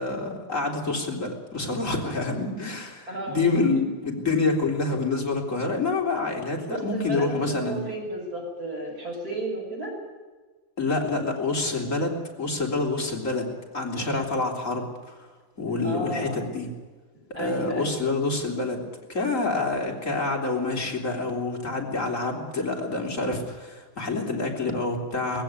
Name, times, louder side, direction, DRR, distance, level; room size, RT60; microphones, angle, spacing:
voice 1, 0.0-7.9 10.8-13.5 13.7-15.3 15.6-16.7 17.4-18.8 19.1-25.4, left 3 dB, 40° left, 1 dB, 4.0 m, -27 dB
voice 2, 3.1-3.4 6.7-9.9 15.8-16.4 17.3-18.0, right 1 dB, 45° right, -1 dB, 7.2 m, -33 dB
19.0 x 16.0 x 9.7 m, 1.3 s
omnidirectional pair, 2.2 m